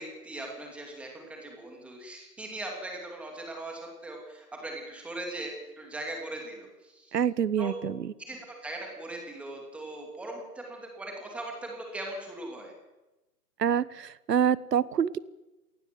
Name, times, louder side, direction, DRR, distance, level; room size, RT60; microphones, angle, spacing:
voice 1, 0.0-7.2 7.6-7.7 8.3-12.7, right 1 dB, 5° right, 0 dB, 2.7 m, -40 dB
voice 2, 7.1-8.1 13.6-15.2, right 8 dB, 80° right, 19 dB, 1.3 m, -26 dB
28.0 x 18.5 x 7.7 m, 1.0 s
hypercardioid pair, 175°, 48 cm